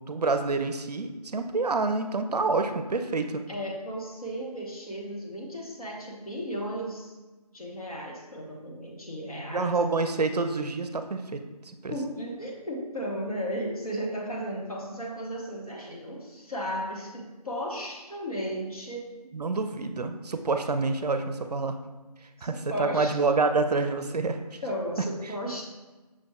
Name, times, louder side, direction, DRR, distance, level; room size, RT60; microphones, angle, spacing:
voice 1, 0.1-3.4 9.5-11.4 11.8-11.9 19.3-21.8 22.4-24.4, right 3 dB, 75° right, 8 dB, 0.4 m, -27 dB
voice 2, 3.5-7.1 7.5-9.8 11.9-19.1 22.4-23.2 24.6-25.7, equal, 65° left, -2 dB, 1.1 m, -35 dB
5.9 x 2.9 x 2.3 m, 1.2 s
figure-of-eight pair, 180°, 20 cm